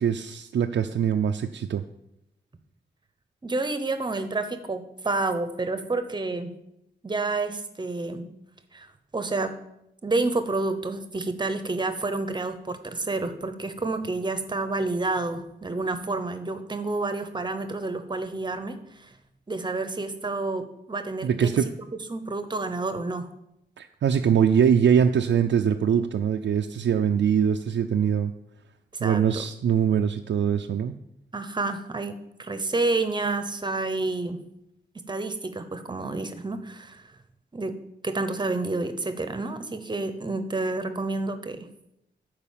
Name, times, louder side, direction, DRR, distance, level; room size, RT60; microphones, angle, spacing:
voice 1, 0.0-1.8 21.2-21.7 23.8-28.3 29.0-31.0, right 8 dB, 90° right, 5 dB, 0.5 m, -23 dB
voice 2, 3.4-6.5 7.0-8.2 8.7-9.5 10.0-19.1 19.5-21.5 22.1-23.3 29.0-29.4 31.3-34.4 35.1-37.1 37.5-37.8 38.0-41.7, right 3 dB, 25° right, 9 dB, 0.8 m, -29 dB
11.0 x 4.8 x 7.4 m, 0.83 s
wide cardioid pair, 170°, 19 cm